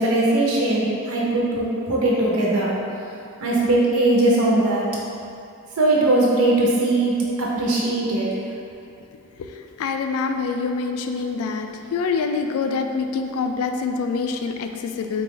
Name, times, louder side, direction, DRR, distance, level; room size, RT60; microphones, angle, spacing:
voice 1, 0.0-2.7 3.4-4.9 5.8-8.3, right 2 dB, 85° right, -4 dB, 0.8 m, -20 dB
voice 2, 9.4-15.2, left 4 dB, 80° left, 6 dB, 0.3 m, -26 dB
4.1 x 2.4 x 3.7 m, 2.6 s
head